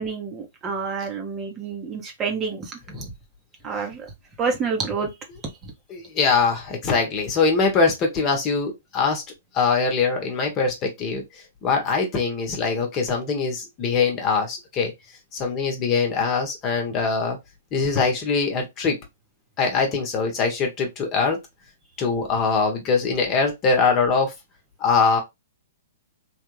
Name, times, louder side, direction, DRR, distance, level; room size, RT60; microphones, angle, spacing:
voice 1, 0.0-3.0 3.6-4.1 4.4-5.1 5.6-5.7, right 5 dB, 25° right, 0.9 m, -28 dB
voice 2, 5.9-9.2 9.5-14.9 15.3-17.4 17.7-19.0 19.6-21.4 22.0-24.3 24.8-25.2, left 4 dB, 30° left, 1.1 m, -22 dB
3.4 x 2.3 x 3.1 m
hypercardioid pair, 120°, 0 cm